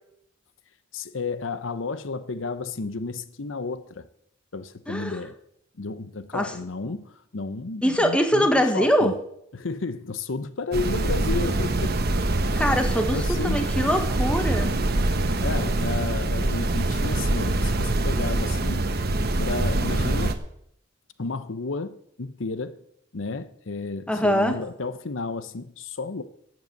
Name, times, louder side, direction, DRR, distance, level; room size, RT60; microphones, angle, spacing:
voice 1, 0.9-4.1 4.5-5.3 5.8-9.1 9.5-11.9 13.1-13.6 15.4-18.8 19.4-20.4 21.2-22.8 23.1-26.2, left 3 dB, 90° left, 0.8 m, -32 dB
voice 2, 4.9-5.2 6.3-6.5 7.8-9.1 12.5-14.7 24.1-24.5, equal, 5° left, 1.4 m, -23 dB
sound 1, 10.7-20.3, right 2 dB, 55° right, 1.2 m, -24 dB
12.0 x 8.0 x 7.9 m
head